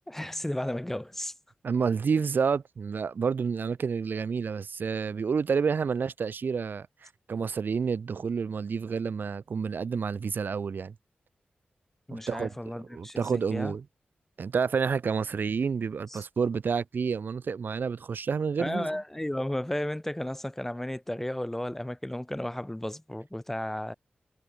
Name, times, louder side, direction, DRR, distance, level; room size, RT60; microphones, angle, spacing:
voice 1, 0.1-1.3 12.1-13.7 16.1-16.2 18.6-23.9, left 1 dB, 10° left, 5.0 m, -34 dB
voice 2, 1.6-10.9 12.1-12.5 12.9-13.8 14.4-18.9, right 5 dB, 70° right, 3.8 m, -29 dB
wide cardioid pair, 110°, 3 cm